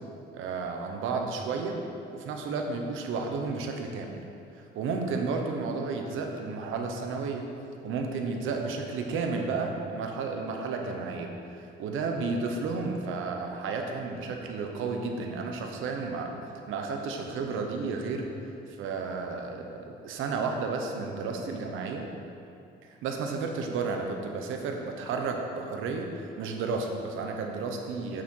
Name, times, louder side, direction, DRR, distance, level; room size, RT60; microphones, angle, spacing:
voice 1, 0.3-1.8 2.1-4.2 4.7-7.4 7.8-16.4 16.7-18.3 18.8-22.1 22.9-28.2, right 4 dB, 90° right, 3 dB, 1.1 m, -32 dB
8.8 x 8.8 x 4.6 m, 2.6 s
cardioid pair, 90°, 20 cm